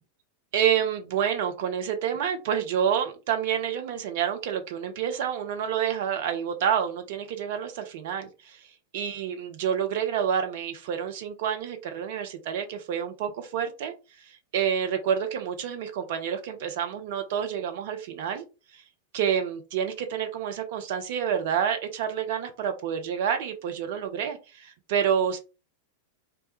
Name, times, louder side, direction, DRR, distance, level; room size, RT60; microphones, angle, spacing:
voice 1, 0.5-8.6 8.9-18.4 18.7-18.8 19.1-25.4, right 8 dB, 50° right, 7 dB, 0.5 m, -28 dB
2.1 x 2.1 x 2.8 m, 0.30 s
figure-of-eight pair, 90°, 0 cm